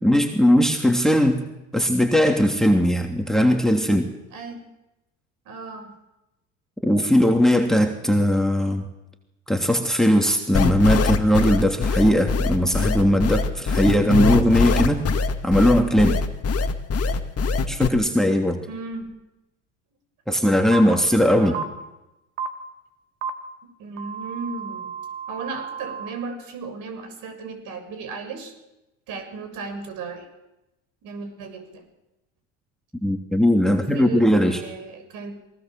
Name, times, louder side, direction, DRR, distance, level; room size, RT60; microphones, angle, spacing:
voice 1, 0.0-1.4 1.7-4.1 6.8-8.9 9.5-15.0 15.4-16.2 17.7-18.6 20.3-21.5 33.0-34.6, equal, ahead, 4 dB, 3.0 m, -19 dB
voice 2, 5.5-5.9 18.7-19.1 21.4-21.7 23.8-24.9 25.3-28.5 29.1-30.3 31.0-31.8 33.7-35.4, right 4 dB, 60° right, 6 dB, 7.1 m, -35 dB
sound 1, 10.5-17.9, left 4 dB, 40° left, 2.2 m, -22 dB
sound 2, 20.7-20.8 21.5-21.6 22.4-22.5 23.2-23.3 24.0-26.1, right 7 dB, 75° right, 2.4 m, -32 dB
23.5 x 19.0 x 7.7 m, 0.96 s
hypercardioid pair, 70°, 37 cm